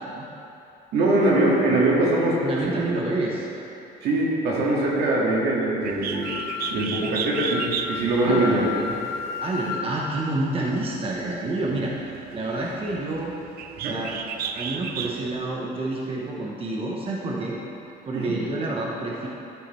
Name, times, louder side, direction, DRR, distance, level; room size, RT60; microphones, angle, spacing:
voice 1, 0.9-2.4 2.6-2.8 4.0-6.3 6.7-8.6 13.8-14.0 18.1-18.4, right 2 dB, 80° right, -5 dB, 1.9 m, -22 dB
voice 2, 2.4-3.5 8.2-8.7 9.4-11.9 12.3-13.3 13.9-14.2 14.5-17.6 18.0-19.3, right 2 dB, 35° right, -3 dB, 1.0 m, -28 dB
Bird, 5.8-15.4, right 8 dB, 65° right, 0.5 m, -35 dB
Wind instrument woodwind instrument, 6.1-9.9, left 6 dB, 85° left, 0.7 m, -33 dB
11.5 x 4.9 x 4.4 m, 2.9 s
cardioid pair, 110°, 17 cm